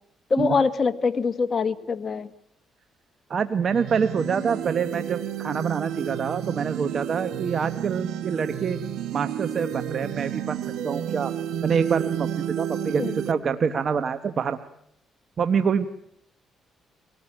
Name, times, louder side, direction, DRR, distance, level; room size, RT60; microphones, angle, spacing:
voice 1, 0.3-2.3 13.0-13.2, left 5 dB, 40° left, 9 dB, 1.6 m, -24 dB
voice 2, 3.3-8.8 9.1-10.6 10.8-11.3 11.6-14.6 15.4-15.9, right 6 dB, 50° right, 10 dB, 1.2 m, -26 dB
sound 1, 3.7-13.3, right 10 dB, 85° right, 1.2 m, -31 dB
24.5 x 18.5 x 8.9 m, 0.75 s
cardioid pair, 90°, 0 cm